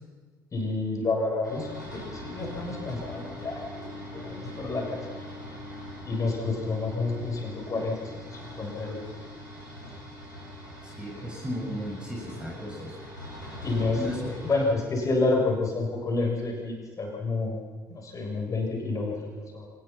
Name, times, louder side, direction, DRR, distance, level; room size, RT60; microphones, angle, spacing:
voice 1, 0.5-3.8 4.1-5.1 6.0-9.0 13.6-17.6 17.9-19.7, left 3 dB, 35° left, 0 dB, 7.3 m, -29 dB
sound 1, 1.4-14.7, left 1 dB, 90° left, 5.3 m, -42 dB
voice 2, 10.8-13.0 14.0-14.2, equal, 10° right, -3 dB, 7.4 m, -35 dB
25.0 x 20.0 x 6.0 m, 1.5 s
figure-of-eight pair, 50°, 10 cm